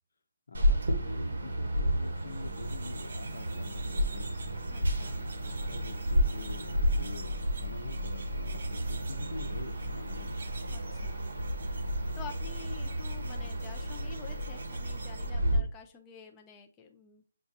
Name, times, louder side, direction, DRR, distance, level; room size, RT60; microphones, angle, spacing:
voice 1, 0.5-4.3 5.1-10.3 15.4-15.7, left 3 dB, 80° left, 7 dB, 0.8 m, -45 dB
sound 1, 0.5-15.6, equal, 85° right, 1.1 m, -32 dB
sound 2, 2.0-15.3, right 4 dB, 60° right, 0.7 m, -50 dB
voice 2, 4.7-5.2 10.7-11.2 12.1-17.3, left 5 dB, 10° left, 2 dB, 0.4 m, -49 dB
6.8 x 2.4 x 2.7 m, 0.35 s
hypercardioid pair, 175°, 0 cm